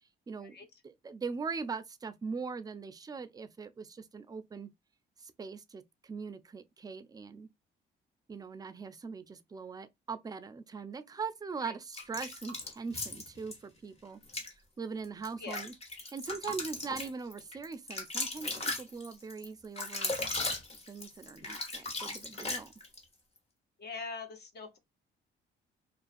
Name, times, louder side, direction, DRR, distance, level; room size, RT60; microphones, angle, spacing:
voice 1, 0.8-4.7 5.2-7.5 8.3-14.2 14.8-15.7 16.1-20.1 20.9-22.7, right 5 dB, 20° right, 0.3 m, -41 dB
sound 1, 11.9-13.6 14.2-14.5 15.0-23.0, left 2 dB, 30° left, 0.9 m, -37 dB
voice 2, 23.8-24.8, left 4 dB, 55° left, 0.6 m, -42 dB
2.4 x 2.3 x 2.4 m
cardioid pair, 90°, 20 cm